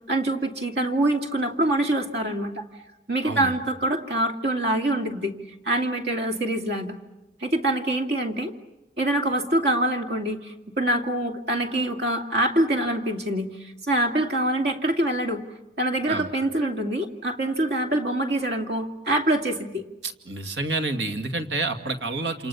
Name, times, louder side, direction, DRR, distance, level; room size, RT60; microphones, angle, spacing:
voice 1, 0.1-2.6 3.1-5.3 5.6-6.9 7.4-8.5 9.0-15.4 15.8-19.8, right 1 dB, 65° right, 4 dB, 2.6 m, -25 dB
voice 2, 20.0-22.5, right 3 dB, 85° right, 7 dB, 2.3 m, -29 dB
28.5 x 28.0 x 7.1 m, 0.97 s
head